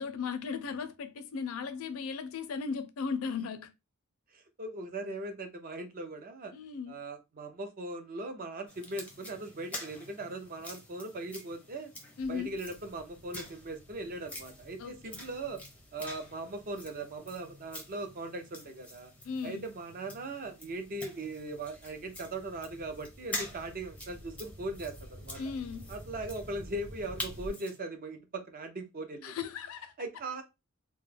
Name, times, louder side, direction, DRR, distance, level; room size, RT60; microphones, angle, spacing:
voice 1, 0.0-3.7 6.5-7.0 12.2-12.5 14.8-15.2 19.2-19.7 25.4-25.9 29.2-29.9, left 5 dB, 75° left, 0.4 m, -36 dB
voice 2, 4.3-6.5 6.9-11.9 12.3-15.6 15.9-19.1 19.4-25.4 25.9-29.3 30.0-30.4, right 2 dB, 40° right, 0.5 m, -39 dB
sound 1, 8.7-27.8, left 1 dB, 5° left, 0.5 m, -47 dB
sound 2, 12.2-18.9 19.5-27.5, equal, 75° right, 0.8 m, -52 dB
2.2 x 2.0 x 3.2 m
head